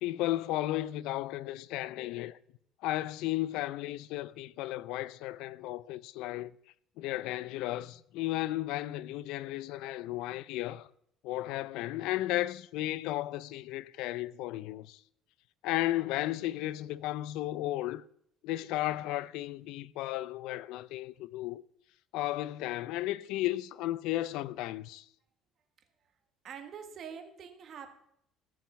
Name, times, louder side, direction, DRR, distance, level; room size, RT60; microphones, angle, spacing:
voice 1, 0.0-2.4 2.8-6.5 7.0-10.9 11.2-15.0 15.6-18.0 18.4-21.6 22.1-25.1, left 15 dB, 75° left, 0.5 m, -34 dB
voice 2, 26.4-28.0, right 7 dB, 40° right, 1.6 m, -45 dB
15.0 x 5.8 x 7.4 m
cardioid pair, 160°, 0 cm